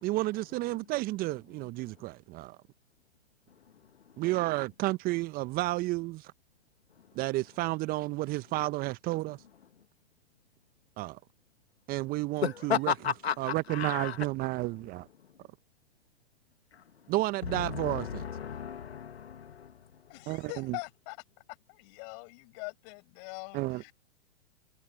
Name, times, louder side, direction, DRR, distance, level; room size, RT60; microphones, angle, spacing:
voice 1, 0.0-2.6 4.2-6.3 7.1-9.4 11.0-11.2 11.9-12.9 13.4-15.1 17.1-18.3 20.3-20.8 23.5-23.9, right 19 dB, 30° right, 0.9 m, -31 dB
voice 2, 12.4-14.1 17.8-19.7, left 8 dB, 75° left, 1.7 m, -33 dB
voice 3, 20.1-21.2 21.7-23.9, left 39 dB, 40° left, 7.3 m, -43 dB
figure-of-eight pair, 110°, 32 cm